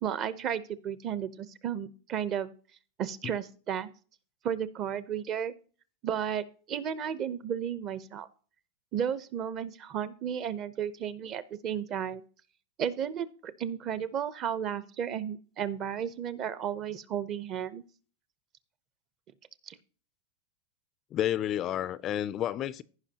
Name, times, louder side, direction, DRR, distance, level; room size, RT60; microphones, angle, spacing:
voice 1, 0.0-2.5 3.0-3.9 4.4-5.5 6.0-8.3 8.9-12.2 12.8-17.8 19.7-19.8, right 8 dB, 30° right, 0.7 m, -33 dB
voice 2, 21.1-22.8, left 11 dB, 30° left, 0.4 m, -30 dB
15.5 x 5.5 x 2.8 m
supercardioid pair, 155°, 0 cm